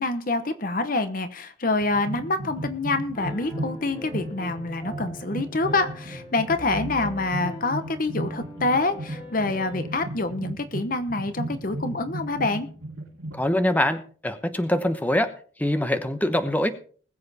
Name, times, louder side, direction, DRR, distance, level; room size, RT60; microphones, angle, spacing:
voice 1, 0.0-12.7, left 2 dB, 45° left, 10 dB, 1.0 m, -26 dB
sound 1, 1.8-13.4, right 1 dB, 80° right, 2.3 m, -35 dB
Piano, 3.1-10.0, equal, 30° left, 5.2 m, -42 dB
voice 2, 13.3-15.3 15.6-16.7, left 1 dB, 10° left, 9 dB, 1.0 m, -24 dB
20.5 x 7.6 x 4.2 m, 0.43 s
head